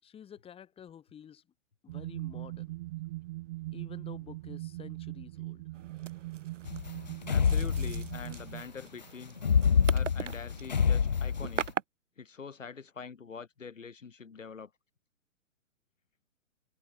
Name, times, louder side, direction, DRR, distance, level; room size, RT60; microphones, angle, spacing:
voice 1, 0.0-1.4 1.8-2.8 3.7-5.7, left 9 dB, 15° left, 6.2 m, -50 dB
sound 1, 1.9-8.7, right 19 dB, 15° right, 0.6 m, -41 dB
sound 2, 5.7-11.8, right 7 dB, 60° right, 1.4 m, -41 dB
sound 3, 6.7-8.4 9.4-11.7, left 6 dB, 35° left, 0.4 m, -27 dB
voice 2, 7.3-9.4 9.9-11.7 12.2-14.7, left 5 dB, 65° left, 5.5 m, -45 dB
figure-of-eight pair, 120°, 41 cm